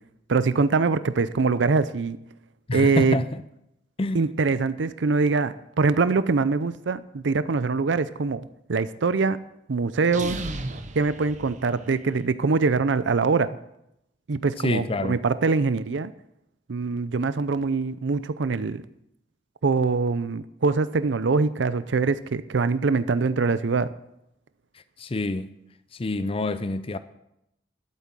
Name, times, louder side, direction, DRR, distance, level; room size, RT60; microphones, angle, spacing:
voice 1, 0.3-2.2 2.7-3.2 4.1-8.4 8.7-9.4 9.7-10.4 11.0-13.6 14.3-16.1 16.7-18.8 19.6-23.9, right 4 dB, 80° right, 0.5 m, -23 dB
voice 2, 2.7-3.4 4.0-4.3 14.6-15.2 25.0-25.5 26.0-27.0, left 2 dB, 30° left, 0.5 m, -27 dB
sound 1, 10.0-12.2, right 2 dB, 45° right, 1.0 m, -35 dB
11.5 x 8.5 x 7.5 m
head